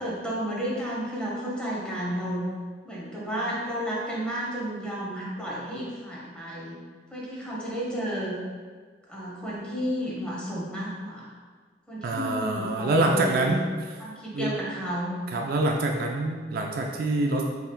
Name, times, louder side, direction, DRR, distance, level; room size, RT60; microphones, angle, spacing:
voice 1, 0.0-2.5 2.8-6.8 7.1-8.4 9.1-11.3 11.9-13.5 14.0-15.5, equal, 5° left, -5 dB, 0.9 m, -32 dB
voice 2, 12.0-13.7 14.3-14.6 15.3-17.4, right 2 dB, 55° right, 2 dB, 0.3 m, -25 dB
5.5 x 3.2 x 2.2 m, 1.5 s
head